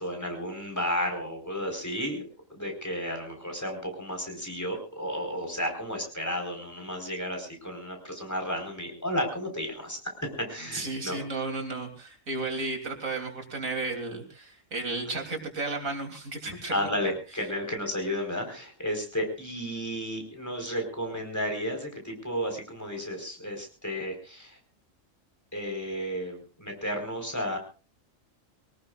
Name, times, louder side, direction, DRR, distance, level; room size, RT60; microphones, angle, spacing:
voice 1, 0.0-2.2 2.5-11.2 16.7-24.6 25.5-27.6, equal, 10° left, 3 dB, 4.3 m, -33 dB
voice 2, 10.7-16.8, right 3 dB, 80° right, 3 dB, 3.4 m, -33 dB
24.0 x 18.5 x 2.4 m, 0.33 s
omnidirectional pair, 1.4 m